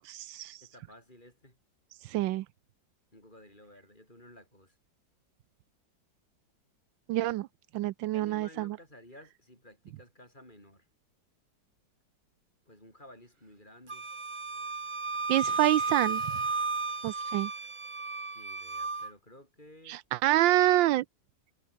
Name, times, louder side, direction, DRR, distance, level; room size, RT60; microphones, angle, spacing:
voice 1, 0.0-0.6 2.0-2.4 7.1-7.5 7.7-8.8 15.3-16.3 17.0-17.5 19.9-21.0, right 15 dB, 80° right, 1.3 m, -27 dB
voice 2, 0.6-1.6 3.1-4.8 8.1-10.9 12.7-14.1 18.3-20.0, left 1 dB, 25° left, 7.9 m, -54 dB
Wind instrument woodwind instrument, 13.9-19.1, right 4 dB, 25° right, 0.7 m, -33 dB
omnidirectional pair, 2.0 m